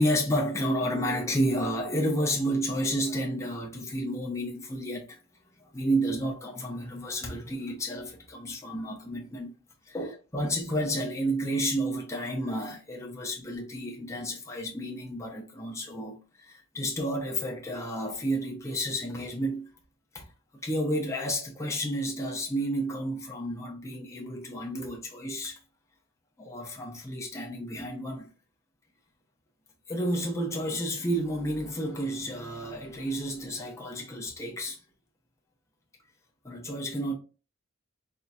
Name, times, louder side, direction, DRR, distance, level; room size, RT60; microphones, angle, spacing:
voice 1, 0.0-5.2 5.6-9.5 9.9-19.7 20.1-20.3 20.6-25.6 26.4-28.3 29.9-34.8 36.4-37.1, equal, 15° left, 0.7 m, -31 dB
4.1 x 3.5 x 2.2 m
head